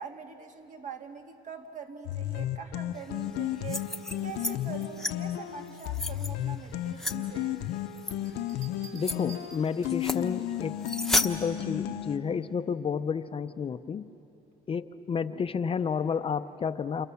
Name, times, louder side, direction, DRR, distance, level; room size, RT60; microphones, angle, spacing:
voice 1, 0.0-7.6, right 6 dB, 50° right, 4 dB, 2.3 m, -43 dB
sound 1, 2.1-12.2, left 12 dB, 90° left, 0.9 m, -34 dB
sound 2, 3.5-4.5 4.8-5.1 5.7-6.3 7.0-7.2 8.0-8.1 8.6-8.7 9.0-9.2 9.9-10.2 10.8-11.3, left 2 dB, ahead, 1.1 m, -31 dB
sound 3, 8.3-10.2 11.8-12.2, right 5 dB, 20° right, 4.9 m, -51 dB
voice 2, 8.9-10.8 11.2-14.1 14.7-17.1, left 6 dB, 35° left, 11 dB, 0.6 m, -31 dB
29.5 x 28.5 x 7.1 m, 2.9 s
cardioid pair, 110°, 17 cm